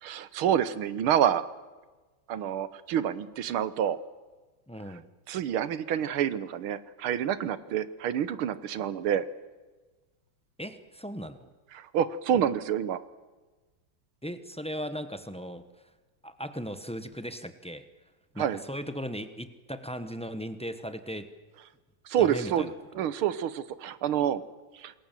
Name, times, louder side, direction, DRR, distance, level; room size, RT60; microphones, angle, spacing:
voice 1, 0.0-1.4 2.3-4.0 5.3-9.3 11.7-13.0 18.4-18.6 22.1-24.4 24.7-24.9, right 9 dB, 75° right, 15 dB, 1.8 m, -28 dB
voice 2, 4.7-5.1 10.6-11.5 14.2-15.7 16.2-17.8 18.3-21.3 22.2-22.7 23.0-23.1, equal, 5° left, 10 dB, 0.4 m, -37 dB
27.5 x 21.5 x 7.4 m, 1.3 s
omnidirectional pair, 2.4 m